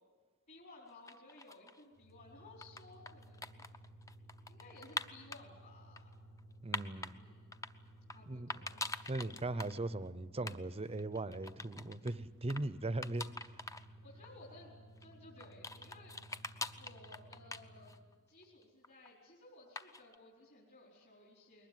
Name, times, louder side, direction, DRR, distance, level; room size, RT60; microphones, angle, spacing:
voice 1, 0.5-3.6 4.5-6.1 7.1-7.4 8.1-8.8 14.0-14.7 15.0-16.2 16.8-18.0 18.3-21.7, left 2 dB, 50° left, -4 dB, 4.7 m, -58 dB
sound 1, 0.9-1.8 2.4-5.4 6.0-7.1 7.5-8.2 8.5-9.8 10.0-10.1 10.4-10.6 10.8-12.1 12.5-12.6 13.0-13.8 14.2-14.3 15.0-18.1 18.4-19.1 19.8-20.2, left 2 dB, 15° left, 0.7 m, -44 dB
sound 2, 2.0-18.1, right 1 dB, 75° left, 6.5 m, -57 dB
voice 2, 6.6-7.1 8.3-8.5 9.1-13.3, right 2 dB, 30° right, 15 dB, 0.7 m, -39 dB
22.0 x 19.5 x 9.5 m, 1.4 s
head